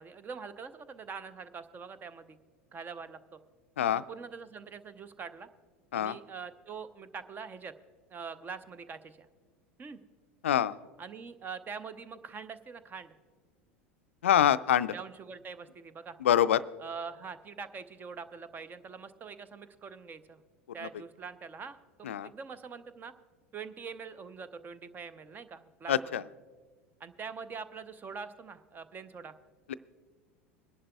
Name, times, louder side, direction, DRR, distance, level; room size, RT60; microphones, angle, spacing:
voice 1, 0.0-2.4 2.7-3.4 3.9-5.5 5.9-7.7 8.1-9.3 9.8-10.0 11.0-13.1 14.9-16.2 16.8-20.4 20.7-23.1 23.5-26.1 27.0-29.3, right 5 dB, 25° right, 13 dB, 0.7 m, -44 dB
voice 2, 10.4-10.8 14.2-14.9 16.2-16.6 22.0-22.3 25.9-26.2 29.7-29.8, left 10 dB, 75° left, 15 dB, 0.4 m, -25 dB
25.0 x 11.0 x 2.3 m, 1.5 s
figure-of-eight pair, 80°, 7 cm